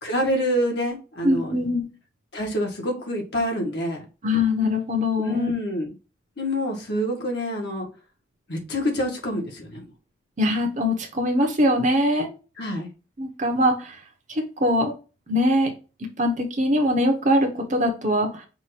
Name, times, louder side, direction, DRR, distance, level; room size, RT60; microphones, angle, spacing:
voice 1, 0.0-1.6 2.3-4.0 5.2-5.9 6.4-7.9 8.5-9.9 12.6-12.9, equal, 60° left, 1.5 m, -27 dB
voice 2, 1.2-1.9 4.2-5.5 10.4-12.3 13.2-14.0 14.3-14.9 15.3-15.7 16.2-18.4, left 1 dB, 40° right, 1.0 m, -22 dB
5.5 x 2.6 x 3.2 m
head